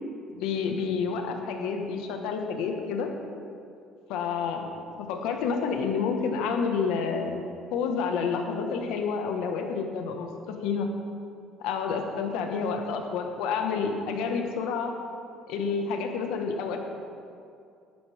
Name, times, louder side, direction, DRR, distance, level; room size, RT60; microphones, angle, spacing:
voice 1, 0.3-3.1 4.1-7.4 7.7-10.9 11.6-14.9 15.5-16.8, left 5 dB, 85° left, 4 dB, 1.4 m, -29 dB
14.0 x 12.0 x 3.6 m, 2.4 s
cardioid pair, 130°, 0 cm